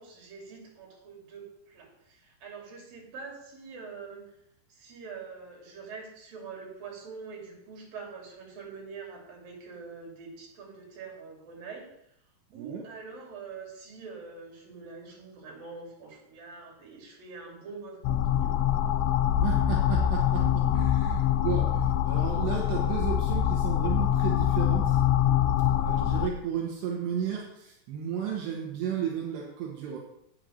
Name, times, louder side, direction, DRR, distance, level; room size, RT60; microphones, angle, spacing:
voice 1, 0.0-4.2 4.7-11.9 12.5-18.6, right 4 dB, 60° right, -1 dB, 4.7 m, -44 dB
voice 2, 12.5-12.9 19.4-25.0 25.8-30.0, right 8 dB, 80° right, -2 dB, 3.6 m, -33 dB
sound 1, 18.0-26.3, left 10 dB, 90° left, 2.7 m, -24 dB
9.2 x 7.9 x 6.5 m, 0.76 s
omnidirectional pair, 4.8 m